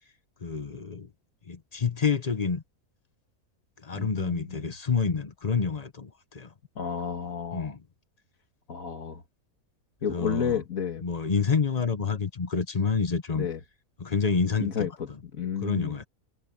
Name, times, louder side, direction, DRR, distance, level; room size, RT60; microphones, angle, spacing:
voice 1, 0.4-1.1 1.5-2.6 3.8-6.5 7.5-7.8 10.1-10.6 11.0-13.5 14.0-14.9 15.6-16.1, left 5 dB, 30° left, 0.9 m, -28 dB
voice 2, 3.9-4.7 6.8-7.7 8.7-9.2 10.0-11.0 13.4-13.6 14.6-15.1 15.3-16.0, left 7 dB, 65° left, 2.2 m, -31 dB
omnidirectional pair, 1.6 m